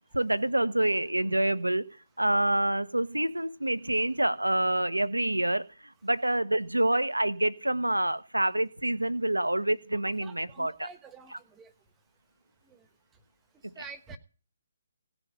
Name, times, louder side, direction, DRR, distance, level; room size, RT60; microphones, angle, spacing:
voice 1, 0.1-1.9 2.2-10.9 13.6-13.8, right 1 dB, 85° right, 1.0 m, -27 dB
voice 2, 10.2-11.7 12.7-12.8 13.8-14.2, right 4 dB, 15° right, 1.3 m, -47 dB
17.5 x 6.3 x 9.8 m
figure-of-eight pair, 140°, 0 cm